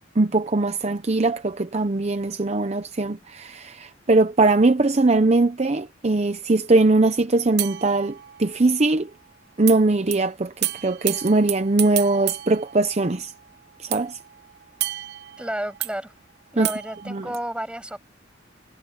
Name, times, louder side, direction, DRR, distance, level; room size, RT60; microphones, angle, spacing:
voice 1, 0.2-9.1 9.6-13.3 13.8-14.2 16.6-16.7 17.1-17.3, right 2 dB, 35° right, 0.7 m, -21 dB
sound 1, 7.6-8.8 9.7-9.8 10.1-10.2 10.6-13.4 13.9-15.9 16.6-17.4, right 14 dB, 60° right, 1.0 m, -32 dB
voice 2, 15.4-16.1 16.5-18.0, right 1 dB, 5° right, 7.7 m, -31 dB
head